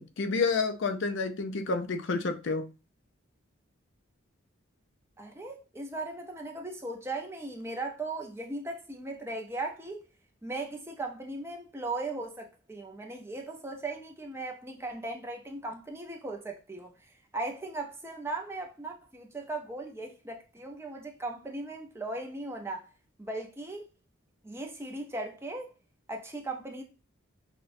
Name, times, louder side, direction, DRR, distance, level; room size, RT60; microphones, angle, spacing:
voice 1, 0.2-2.7, left 4 dB, 60° left, 0.5 m, -29 dB
voice 2, 5.2-10.0 10.4-22.8 23.2-23.9 24.4-25.7 26.1-26.8, right 2 dB, 10° right, 0.5 m, -38 dB
5.8 x 2.2 x 2.6 m
head